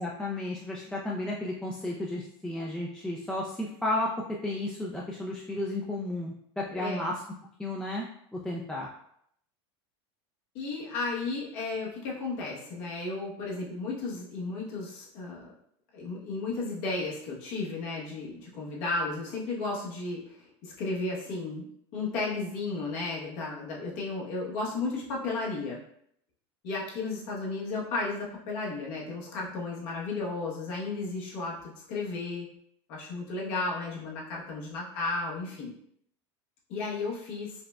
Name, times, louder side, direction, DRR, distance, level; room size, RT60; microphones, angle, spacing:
voice 1, 0.0-4.1 4.4-7.2 7.6-8.0 8.3-8.9, left 1 dB, 5° left, -3 dB, 0.4 m, -33 dB
voice 2, 6.7-7.1 10.5-15.4 15.9-21.7 21.9-25.8 26.6-32.5 32.9-35.7 36.7-37.5, left 3 dB, 65° left, -4 dB, 1.1 m, -34 dB
4.8 x 2.1 x 2.3 m, 0.69 s
supercardioid pair, 110°, 14 cm